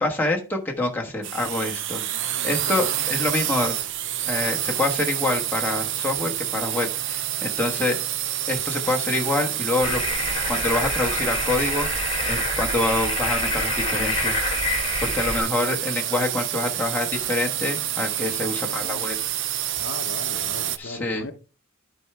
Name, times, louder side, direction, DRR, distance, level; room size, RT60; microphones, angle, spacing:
voice 1, 0.0-3.7 4.3-8.0 8.5-10.0 10.5-14.6 15.0-19.2 20.8-21.3, left 2 dB, 10° left, 1.2 m, -26 dB
sound 1, 1.2-20.8, right 12 dB, 60° right, 0.5 m, -28 dB
voice 2, 2.4-2.8 18.3-19.1 19.8-21.3, left 3 dB, 60° left, 0.7 m, -38 dB
sound 2, 9.8-15.4, left 3 dB, 25° left, 1.7 m, -27 dB
12.0 x 4.8 x 3.3 m
head